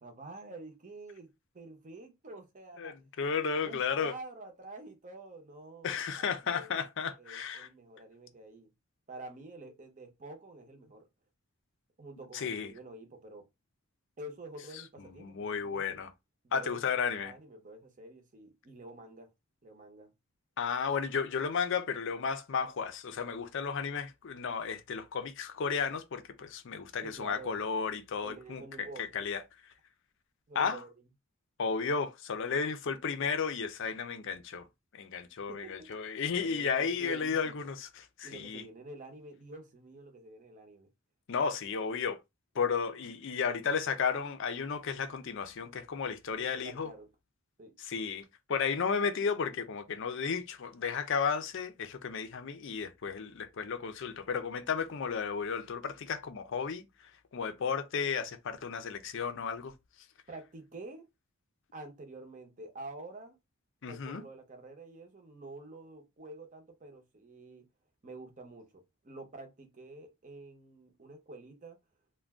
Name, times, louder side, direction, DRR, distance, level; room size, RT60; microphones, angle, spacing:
voice 1, 0.0-3.0 3.5-6.9 7.2-8.7 9.1-11.1 12.0-13.5 14.2-16.0 16.4-16.8 17.1-19.3 19.6-20.1 27.0-27.6 28.2-29.1 30.5-30.9 35.5-36.0 36.4-37.7 38.2-40.9 46.4-47.1 47.6-47.7 60.3-61.1 61.7-63.4 63.9-67.6 68.0-71.8, right 2 dB, 35° right, 0.7 m, -48 dB
voice 2, 2.8-4.1 5.8-7.7 12.3-12.7 15.2-16.1 16.5-17.3 20.6-29.4 30.6-30.8 31.6-34.7 34.9-38.6 41.3-42.2 42.5-46.9 47.8-56.8 57.3-59.7 63.8-64.2, left 6 dB, 55° left, 0.5 m, -33 dB
2.4 x 2.2 x 3.4 m
head